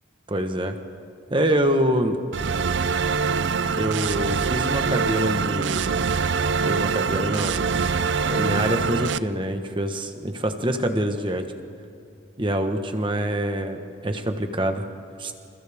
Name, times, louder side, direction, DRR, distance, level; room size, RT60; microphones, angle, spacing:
voice 1, 0.3-0.8 1.3-2.2 3.7-6.0 6.7-7.6 8.3-11.4 12.4-14.8 15.2-15.3, right 1 dB, 25° right, 6 dB, 1.3 m, -25 dB
sound 1, 2.3-9.2, right 5 dB, 60° right, 0.5 m, -24 dB
29.5 x 27.0 x 3.6 m, 2.6 s
head